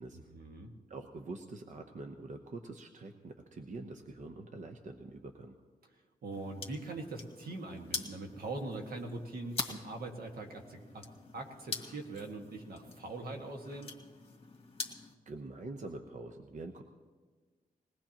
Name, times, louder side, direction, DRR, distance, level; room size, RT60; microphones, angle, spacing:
voice 1, 0.1-0.7 6.2-11.1 11.3-13.9, right 2 dB, 80° right, 2 dB, 1.8 m, -42 dB
voice 2, 0.9-5.6 15.3-16.8, right 3 dB, 55° right, 5 dB, 0.9 m, -45 dB
sound 1, 6.3-15.1, left 4 dB, 40° left, 1.8 m, -44 dB
21.5 x 18.0 x 3.0 m, 1.5 s
wide cardioid pair, 110°, 15 cm